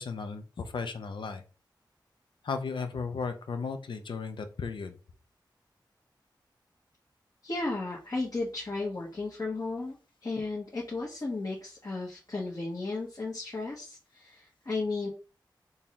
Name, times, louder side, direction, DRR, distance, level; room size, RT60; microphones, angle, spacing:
voice 1, 0.0-1.4 2.4-5.0, left 5 dB, 80° left, 7 dB, 0.5 m, -35 dB
voice 2, 7.4-9.9 10.2-15.1, left 3 dB, 45° left, -5 dB, 1.1 m, -34 dB
3.7 x 2.7 x 2.9 m, 0.35 s
wide cardioid pair, 70°, 8 cm